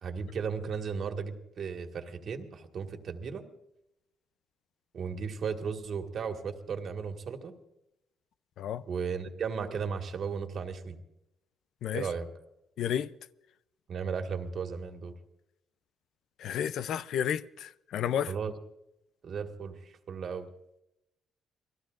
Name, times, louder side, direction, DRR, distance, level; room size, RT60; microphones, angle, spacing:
voice 1, 0.0-3.4 4.9-7.5 8.9-11.0 11.9-12.3 13.9-15.1 18.3-18.6 19.2-20.5, right 6 dB, 50° right, 1.8 m, -35 dB
voice 2, 12.8-13.1 16.4-18.3, left 9 dB, 70° left, 0.5 m, -31 dB
28.5 x 20.0 x 2.5 m
cardioid pair, 135°, 0 cm